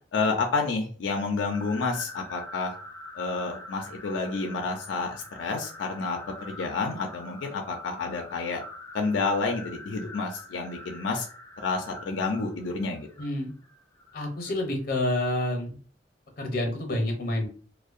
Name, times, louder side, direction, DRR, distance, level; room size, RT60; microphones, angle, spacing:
voice 1, 0.1-2.7 3.1-8.6 8.9-11.3 11.6-13.1, left 3 dB, 90° left, 3 dB, 0.4 m, -29 dB
sound 1, 1.4-14.7, left 2 dB, 15° left, 0.3 m, -45 dB
voice 2, 13.2-13.5 14.1-15.7 16.4-17.5, left 1 dB, 55° left, 3 dB, 0.6 m, -28 dB
2.6 x 2.1 x 2.4 m, 0.41 s
head